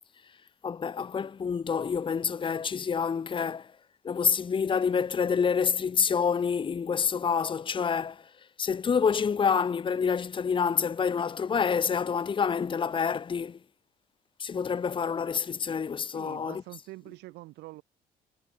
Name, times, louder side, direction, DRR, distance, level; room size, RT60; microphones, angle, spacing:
voice 1, 0.6-3.7 4.0-8.2 8.6-13.6 14.4-16.6, left 6 dB, 30° left, 1.2 m, -27 dB
voice 2, 16.1-17.8, right 20 dB, 90° right, 4.6 m, -45 dB
cardioid pair, 110°, 17 cm